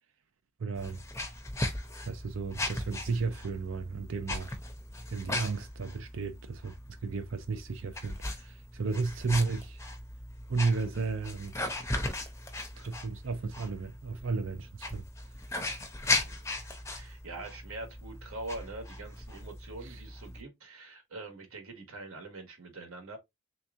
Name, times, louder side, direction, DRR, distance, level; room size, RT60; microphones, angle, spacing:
voice 1, 0.6-1.0 2.0-4.6 5.1-6.8 7.0-9.8 10.5-11.7 12.8-15.0 19.8-20.0, right 4 dB, 65° right, 0.5 m, -33 dB
sound 1, 0.8-20.4, left 2 dB, 15° left, 0.6 m, -38 dB
voice 2, 16.9-23.2, right 2 dB, 80° right, 1.2 m, -44 dB
3.5 x 2.9 x 3.4 m
head